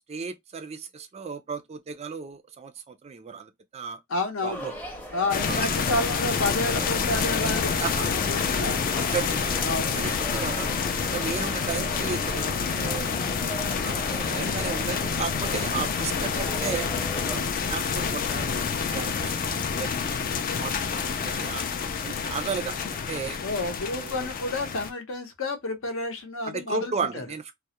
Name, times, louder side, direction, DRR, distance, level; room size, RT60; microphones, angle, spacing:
voice 1, 0.1-4.0 4.4-4.7 5.4-5.8 7.8-8.1 8.9-9.6 9.9-10.7 11.0-13.4 13.8-16.9 17.2-20.0 20.6-21.6 22.0-23.4 24.0-24.3 26.4-27.5, right 5 dB, 30° right, 0.3 m, -34 dB
voice 2, 4.1-4.7 5.1-8.9 9.6-10.0 23.4-27.2, left 2 dB, 65° left, 0.7 m, -30 dB
sound 1, 4.5-17.4, equal, 10° left, 0.6 m, -39 dB
sound 2, 5.3-24.9, left 6 dB, 40° left, 0.3 m, -28 dB
2.3 x 2.0 x 2.8 m
head